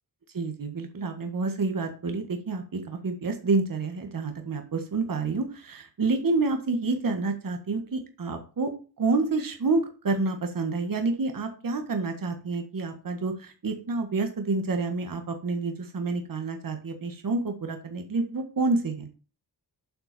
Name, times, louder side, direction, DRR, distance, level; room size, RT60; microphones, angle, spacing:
voice 1, 0.3-8.7 9.0-19.1, right 3 dB, 50° right, 6 dB, 1.7 m, -28 dB
7.9 x 5.9 x 6.9 m, 0.36 s
wide cardioid pair, 95°, 41 cm